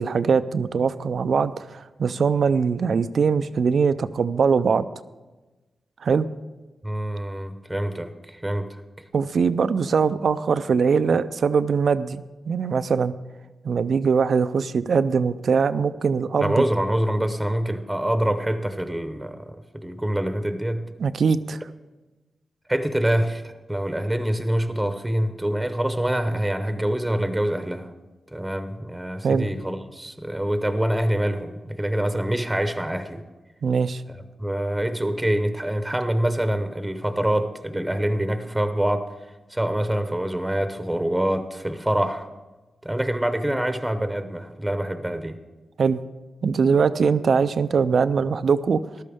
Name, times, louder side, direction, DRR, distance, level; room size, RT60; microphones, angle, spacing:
voice 1, 0.0-4.9 6.0-6.3 9.1-13.1 13.6-16.6 21.0-21.6 29.2-29.5 33.6-34.0 45.8-46.0 46.4-48.8, right 5 dB, 70° right, 14 dB, 0.4 m, -22 dB
voice 2, 6.8-9.0 16.4-20.9 22.7-27.9 28.3-33.2 34.4-39.1 39.5-42.3 42.8-45.4, right 1 dB, 10° right, 9 dB, 0.8 m, -25 dB
14.0 x 12.0 x 3.6 m, 1.2 s
cardioid pair, 70°, 0 cm